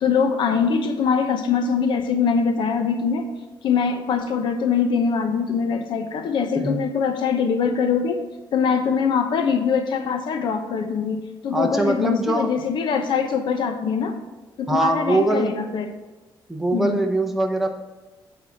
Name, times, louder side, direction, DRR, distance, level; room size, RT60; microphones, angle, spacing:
voice 1, 0.0-3.3 3.6-8.2 8.5-14.1 14.6-15.9 16.7-17.0, left 6 dB, 70° left, 6 dB, 0.9 m, -23 dB
voice 2, 11.5-12.5 14.7-15.5 16.5-17.7, right 2 dB, 5° right, 3 dB, 0.9 m, -22 dB
9.1 x 4.1 x 7.2 m, 1.2 s
cardioid pair, 140°, 8 cm